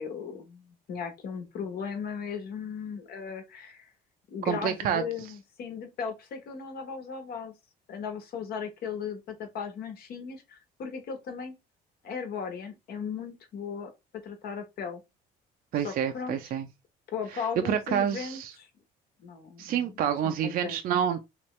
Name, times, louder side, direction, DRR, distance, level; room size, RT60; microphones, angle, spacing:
voice 1, 0.0-3.9 4.3-7.5 7.9-11.5 12.0-13.9 14.2-15.0 15.8-16.4 17.1-18.7 19.2-20.8, left 6 dB, 65° left, 1.2 m, -37 dB
voice 2, 4.5-5.0 15.7-16.7 17.6-18.5 19.6-21.2, right 9 dB, 60° right, 0.5 m, -28 dB
3.3 x 3.0 x 3.1 m
cardioid pair, 110°, 17 cm